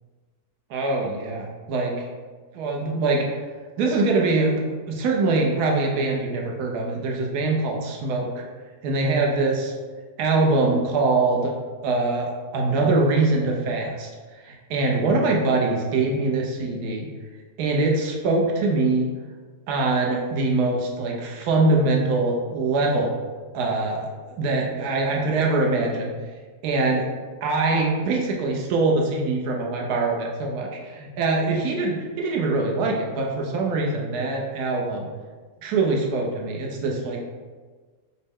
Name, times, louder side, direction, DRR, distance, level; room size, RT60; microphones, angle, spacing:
voice 1, 0.7-2.1 2.5-3.3 3.8-8.3 8.8-9.7 10.2-11.5 11.8-17.1 17.6-19.1 19.7-23.1 23.5-24.1 24.4-26.1 26.6-27.0 27.4-35.1 35.6-37.2, right 3 dB, 75° right, 0 dB, 1.2 m, -23 dB
6.2 x 2.1 x 3.6 m, 1.4 s
omnidirectional pair, 1.7 m